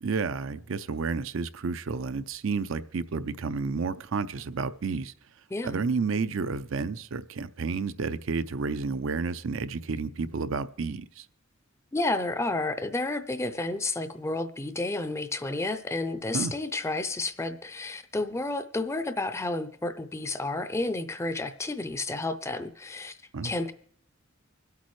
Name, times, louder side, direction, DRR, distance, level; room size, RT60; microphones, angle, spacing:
voice 1, 0.0-5.1 5.6-11.3 16.3-16.5 23.3-23.5, right 4 dB, 65° right, 0.5 m, -31 dB
voice 2, 11.9-23.2 23.4-23.7, left 2 dB, 15° left, 0.5 m, -31 dB
25.0 x 8.4 x 3.2 m
head